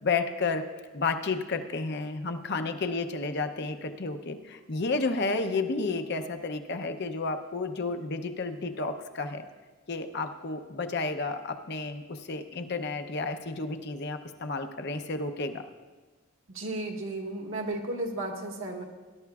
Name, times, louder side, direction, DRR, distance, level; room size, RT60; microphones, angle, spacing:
voice 1, 0.0-0.7 0.9-9.4 9.9-15.6, left 3 dB, 50° left, 7 dB, 0.7 m, -31 dB
voice 2, 16.5-18.8, right 2 dB, 70° right, 1 dB, 1.6 m, -34 dB
19.5 x 11.5 x 2.4 m, 1.3 s
head